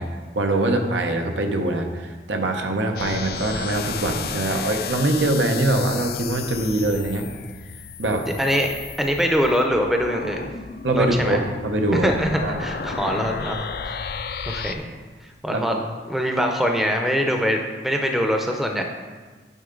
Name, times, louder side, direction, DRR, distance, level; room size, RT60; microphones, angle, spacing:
voice 1, 0.0-7.3 8.0-8.3 10.8-12.1 12.4-12.7 15.5-15.8, right 2 dB, 85° right, 4 dB, 0.9 m, -23 dB
sound 1, 3.0-14.8, left 6 dB, 55° left, 0.4 m, -33 dB
voice 2, 8.4-10.5 10.9-11.4 12.0-14.0 14.5-14.9 15.4-15.8 16.1-18.8, equal, ahead, 2 dB, 0.6 m, -23 dB
9.3 x 5.5 x 3.8 m, 1.3 s
head